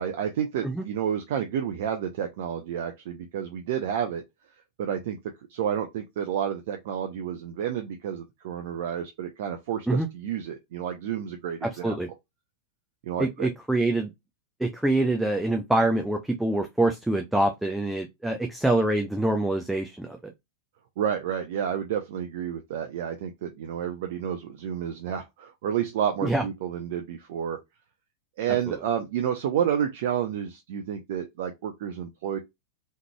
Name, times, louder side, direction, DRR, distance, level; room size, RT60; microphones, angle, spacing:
voice 1, 0.0-4.2 4.8-5.2 5.5-12.0 13.0-13.5 21.0-27.6 28.4-32.4, right 9 dB, 55° right, 0.6 m, -30 dB
voice 2, 11.6-12.1 13.2-14.1 14.6-20.3 26.2-26.4 28.7-28.8, right 2 dB, 5° right, 0.5 m, -25 dB
3.6 x 3.2 x 2.2 m
figure-of-eight pair, 90°, 0 cm